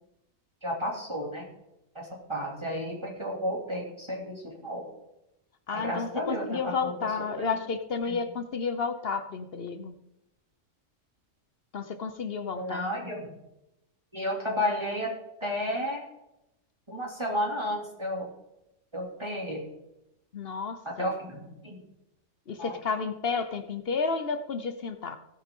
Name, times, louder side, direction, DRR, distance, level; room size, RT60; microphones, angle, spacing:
voice 1, 0.6-1.4 1.9-4.9 5.7-6.9 7.4-7.5 8.0-8.2 12.5-13.3 14.1-15.1 15.4-16.0 16.9-18.3 18.9-19.7 20.8-21.8 22.6-22.8, equal, 20° right, -3 dB, 2.9 m, -32 dB
voice 2, 5.7-10.0 11.7-12.8 20.3-21.1 22.5-25.2, left 5 dB, 50° left, 9 dB, 1.1 m, -31 dB
17.0 x 8.9 x 3.8 m, 0.89 s
omnidirectional pair, 1.3 m